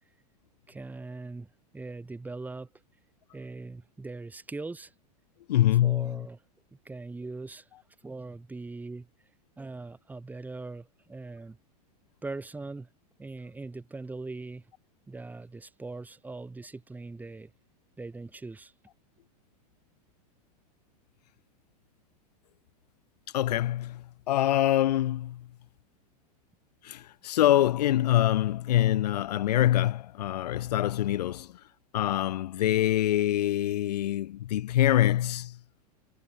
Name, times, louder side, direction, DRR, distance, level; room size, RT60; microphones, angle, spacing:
voice 1, 0.7-1.5 1.7-2.7 3.3-4.9 5.8-6.4 6.9-7.7 8.0-9.1 9.6-11.6 12.2-12.9 13.2-14.6 15.1-17.5 18.0-18.7, right 3 dB, 10° right, 3.5 m, -40 dB
voice 2, 5.5-6.3 23.3-25.5 26.8-31.5 31.9-35.6, left 13 dB, 90° left, 0.6 m, -25 dB
supercardioid pair, 135°, 20 cm